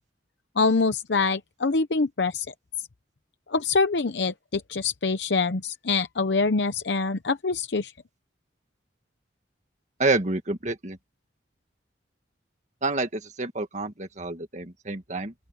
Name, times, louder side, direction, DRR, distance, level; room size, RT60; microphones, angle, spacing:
voice 1, 0.6-2.5 3.5-7.9, left 4 dB, 65° left, 0.8 m, -25 dB
voice 2, 10.0-11.0 12.8-15.3, right 3 dB, 40° right, 1.7 m, -28 dB
open air
head